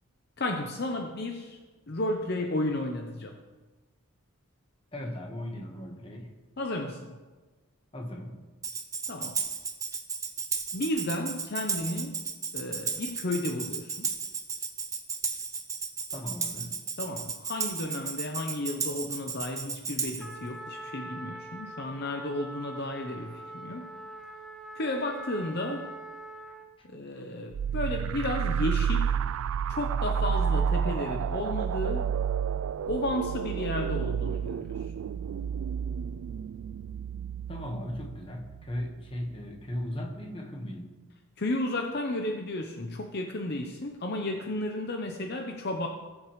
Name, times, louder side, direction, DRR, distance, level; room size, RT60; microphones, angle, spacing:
voice 1, 0.4-1.6 1.9-3.3 6.6-7.2 9.1-9.4 10.7-12.2 12.5-14.1 17.0-23.9 24.8-25.9 26.9-29.1 29.7-32.1 32.9-34.8 41.4-45.9, left 1 dB, 50° left, 4 dB, 0.8 m, -33 dB
voice 2, 4.9-6.3 7.9-8.4 16.1-16.7 26.8-26.9 37.5-40.9, left 1 dB, 25° left, 2 dB, 1.4 m, -37 dB
Tambourine, 8.6-20.3, right 5 dB, 15° right, 0.7 m, -34 dB
Trumpet, 20.2-26.8, right 1 dB, ahead, 1.1 m, -43 dB
sound 1, 27.5-38.9, right 7 dB, 75° right, 0.3 m, -30 dB
19.5 x 7.4 x 3.2 m, 1.3 s
head